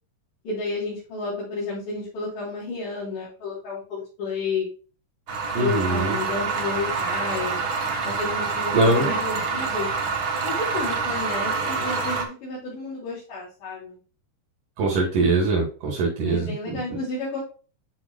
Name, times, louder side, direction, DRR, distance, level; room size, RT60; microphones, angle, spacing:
voice 1, 0.4-4.7 5.6-7.6 8.0-9.9 10.4-14.0 16.3-17.4, left 3 dB, 70° left, -8 dB, 4.9 m, -31 dB
sound 1, 5.3-12.2, right 4 dB, 50° right, 1.8 m, -27 dB
voice 2, 5.5-6.2 8.7-9.2 14.8-17.0, right 2 dB, 75° right, -3 dB, 4.0 m, -23 dB
11.5 x 6.0 x 2.2 m, 0.36 s
omnidirectional pair, 3.7 m